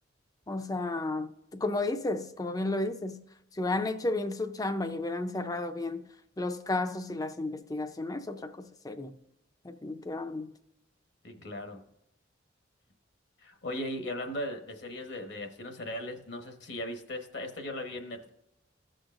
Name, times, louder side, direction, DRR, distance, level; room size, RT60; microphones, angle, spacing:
voice 1, 0.5-3.2 3.5-6.0 6.4-9.1 9.6-10.5, left 2 dB, 20° left, 0.5 m, -33 dB
voice 2, 11.2-11.8 13.4-18.3, left 1 dB, 65° left, 1.1 m, -38 dB
15.5 x 6.3 x 2.5 m
head